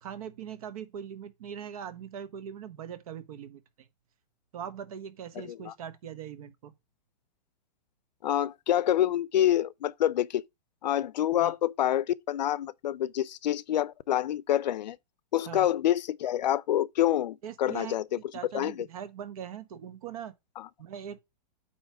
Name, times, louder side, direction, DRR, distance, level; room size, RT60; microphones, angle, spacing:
voice 1, 0.0-3.9 4.5-6.7 11.4-11.5 15.4-15.7 17.4-20.3 20.8-21.2, right 8 dB, 60° right, 1.0 m, -41 dB
voice 2, 8.2-10.4 10.8-15.0 15.3-18.2 18.5-18.9 20.6-20.7, left 12 dB, 85° left, 0.5 m, -27 dB
8.7 x 3.1 x 4.6 m
hypercardioid pair, 155°, 21 cm